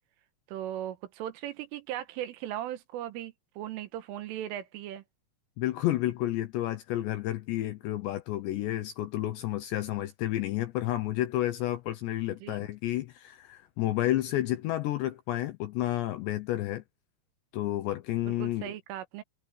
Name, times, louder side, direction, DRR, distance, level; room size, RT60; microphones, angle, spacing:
voice 1, 0.5-5.0 12.4-12.7 18.2-19.2, right 12 dB, 75° right, 3.7 m, -38 dB
voice 2, 5.6-16.8 17.5-18.7, left 14 dB, 75° left, 2.7 m, -31 dB
omnidirectional pair, 6.0 m